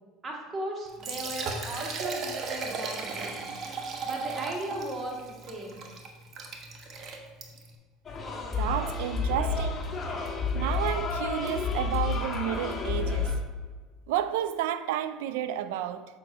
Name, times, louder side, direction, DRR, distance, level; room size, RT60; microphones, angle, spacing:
voice 1, 0.2-3.4 4.0-5.8, right 1 dB, 35° right, 1.6 m, -37 dB
Liquid, 0.9-7.8, right 4 dB, 50° right, 1.0 m, -36 dB
sound 1, 8.0-13.3, left 4 dB, 30° left, 1.4 m, -30 dB
voice 2, 8.6-9.8 10.5-13.4 14.1-16.1, right 11 dB, 80° right, 0.4 m, -31 dB
7.9 x 5.8 x 2.6 m
hypercardioid pair, 85°, 0 cm